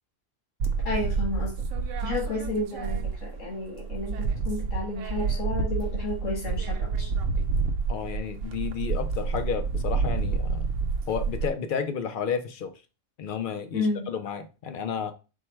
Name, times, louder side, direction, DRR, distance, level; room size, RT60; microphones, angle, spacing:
sound 1, 0.6-3.5 3.8-11.5, right 4 dB, 80° right, 0.9 m, -29 dB
voice 1, 0.9-1.5 2.0-7.1 13.7-14.1, left 2 dB, 80° left, -3 dB, 1.7 m, -31 dB
voice 2, 7.9-10.7 11.1-12.7 13.2-15.1, left 7 dB, 60° left, 8 dB, 0.5 m, -31 dB
4.4 x 2.1 x 4.4 m, 0.31 s
omnidirectional pair, 1.3 m